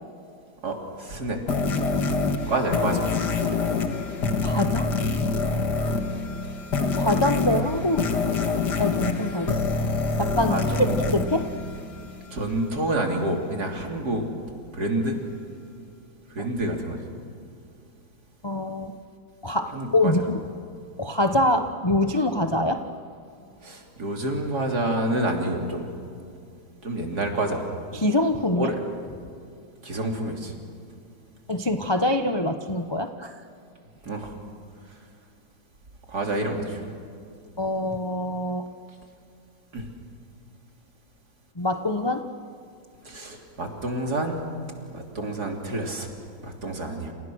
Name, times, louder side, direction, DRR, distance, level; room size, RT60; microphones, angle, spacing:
voice 1, 0.6-1.4 2.5-3.1 3.5-3.6 10.5-11.0 12.3-14.3 14.7-15.2 16.3-17.0 19.7-20.1 23.6-25.9 26.8-27.6 28.5-28.8 29.8-30.5 34.0-34.3 36.1-36.9 39.7-39.9 43.0-44.4 44.9-46.1 46.4-47.1, right 1 dB, 50° right, 2 dB, 3.7 m, -28 dB
sound 1, 1.5-12.3, left 4 dB, 60° left, 2.2 m, -26 dB
voice 2, 4.4-4.9 7.0-8.5 8.8-9.6 10.2-10.6 11.0-11.5 18.4-18.9 19.4-20.4 21.0-22.8 27.9-28.7 31.5-33.4 37.6-38.6 41.6-42.2, left 1 dB, 20° left, 6 dB, 0.7 m, -25 dB
29.5 x 28.5 x 6.4 m, 2.4 s
omnidirectional pair, 2.1 m